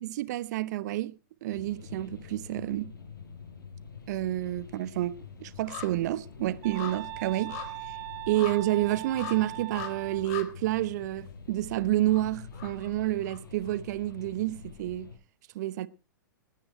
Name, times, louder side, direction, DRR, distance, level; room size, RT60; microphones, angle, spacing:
voice 1, 0.0-1.1 1.4-2.9 4.1-7.6 8.3-15.1 15.5-15.9, right 15 dB, 55° right, 0.9 m, -29 dB
sound 1, 1.5-15.2, left 5 dB, 80° left, 5.2 m, -46 dB
sound 2, 2.7-3.5 3.8-13.8 14.1-14.2, left 10 dB, 50° left, 3.4 m, -45 dB
sound 3, 6.6-10.3, right 24 dB, 35° right, 0.6 m, -40 dB
19.0 x 9.8 x 4.6 m
figure-of-eight pair, 105°, 11 cm